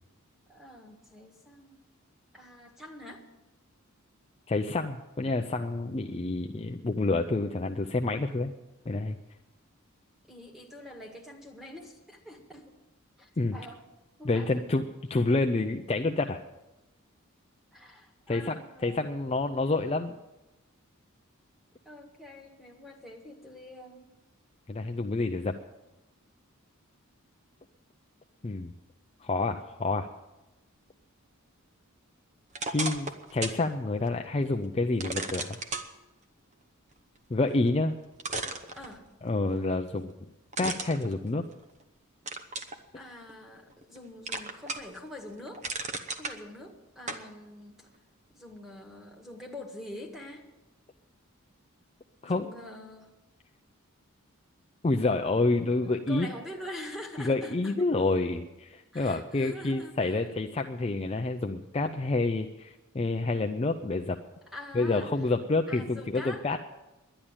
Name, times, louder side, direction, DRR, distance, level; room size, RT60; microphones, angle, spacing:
voice 1, 0.5-1.8 2.3-3.2 10.3-12.7 13.2-13.8 14.2-14.6 17.7-19.4 21.8-24.1 38.7-39.1 42.9-47.9 48.3-50.5 52.2-53.1 55.8-57.8 58.9-60.3 64.5-65.3 65.7-66.6, left 1 dB, ahead, -1 dB, 1.7 m, -45 dB
voice 2, 4.5-8.5 8.9-9.2 13.4-13.5 14.2-14.8 15.1-16.4 18.3-20.2 24.7-25.6 28.4-28.7 29.2-30.1 32.6-35.6 37.3-38.0 39.2-40.1 40.6-41.4 52.2-52.5 54.8-56.3 57.2-64.2 64.7-66.6, left 2 dB, 30° left, 5 dB, 0.5 m, -28 dB
sound 1, 32.5-33.6 34.1-34.2 35.0-35.9 37.7-37.8 38.2-39.3 40.5-41.8 42.3-42.8 43.3-44.0 44.3-45.0 45.3-46.4 47.1-47.3, right 3 dB, 35° right, 0.9 m, -35 dB
11.0 x 10.5 x 8.9 m, 1.0 s
head